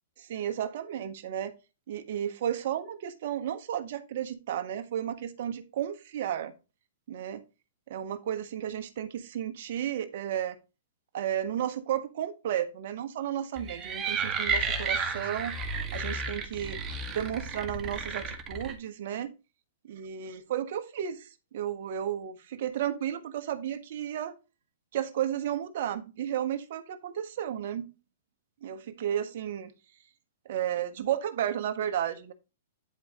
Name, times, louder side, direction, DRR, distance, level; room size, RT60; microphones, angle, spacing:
voice 1, 0.2-1.5 1.9-6.5 7.1-7.4 7.9-10.6 11.1-15.5 15.9-16.8 17.1-19.3 19.9-24.3 24.9-27.9 28.6-29.7 30.5-32.3, right 10 dB, 60° right, 10 dB, 1.3 m, -33 dB
sound 1, 13.6-18.7, right 4 dB, 25° right, 1.9 m, -32 dB
10.5 x 5.0 x 4.2 m, 0.29 s
hypercardioid pair, 125°, 0 cm